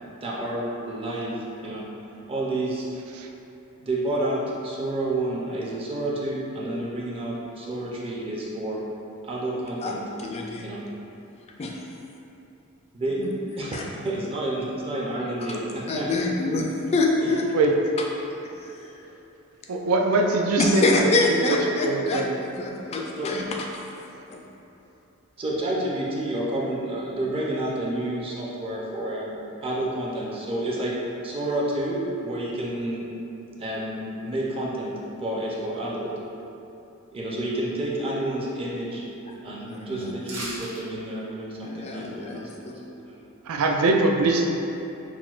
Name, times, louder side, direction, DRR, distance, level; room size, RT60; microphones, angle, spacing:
voice 1, 0.2-1.3 1.6-1.8 2.3-2.9 3.8-8.8 9.2-10.0 10.6-10.8 12.9-13.2 13.6-16.1 17.2-17.3 23.2-23.3 25.4-30.9 31.2-33.1 33.6-34.9 35.2-36.1 37.1-39.0 39.4-43.2, right 1 dB, 25° right, -5 dB, 0.5 m, -29 dB
voice 2, 10.2-10.6 11.6-11.8 13.2-13.3 13.7-13.8 15.9-17.5 18.6-18.9 20.6-23.5 24.3-24.4 39.7-40.1 41.6-42.7, left 2 dB, 30° left, 0 dB, 0.3 m, -25 dB
voice 3, 19.7-21.6 21.8-22.3 43.5-44.5, right 3 dB, 80° right, 1 dB, 0.4 m, -22 dB
sound 1, 40.2-40.8 41.2-41.3, right 1 dB, 55° right, 1.0 m, -35 dB
5.9 x 2.2 x 2.3 m, 2.9 s
head